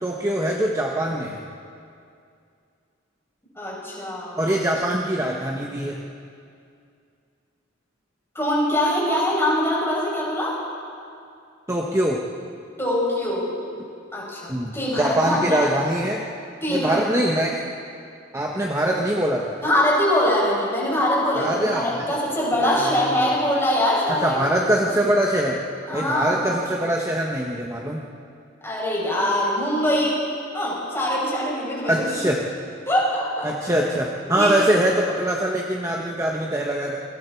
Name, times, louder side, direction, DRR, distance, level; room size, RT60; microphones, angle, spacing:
voice 1, 0.0-1.4 4.4-6.0 11.7-12.2 14.5-16.2 16.7-17.6 18.3-19.6 21.4-22.0 22.6-23.1 24.2-25.6 25.9-28.0 31.9-32.4 33.4-37.0, right 1 dB, 15° right, -1 dB, 1.2 m, -23 dB
voice 2, 3.6-4.4 8.3-10.5 12.8-13.5 14.1-15.7 16.6-17.3 19.6-24.7 25.9-26.4 28.6-30.2 30.5-32.1 32.9-33.5 34.3-34.7, left 1 dB, 15° left, -6 dB, 7.7 m, -23 dB
28.0 x 23.0 x 4.6 m, 2.4 s
head